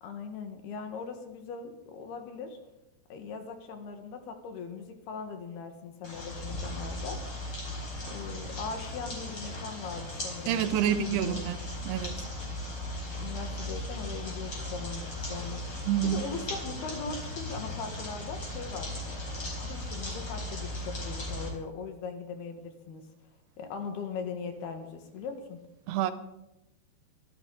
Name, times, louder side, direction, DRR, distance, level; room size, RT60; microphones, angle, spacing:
voice 1, 0.0-2.6 3.1-7.2 8.1-11.5 13.2-15.6 16.0-18.9 19.6-23.0 23.6-25.6, left 5 dB, 70° left, 5 dB, 3.4 m, -40 dB
sound 1, 6.0-21.5, left 1 dB, 25° left, 4.6 m, -37 dB
voice 2, 10.5-11.6 11.9-12.2 15.9-16.2 25.9-26.1, right 10 dB, 80° right, 11 dB, 2.6 m, -27 dB
23.5 x 13.0 x 4.0 m, 0.88 s
omnidirectional pair, 4.9 m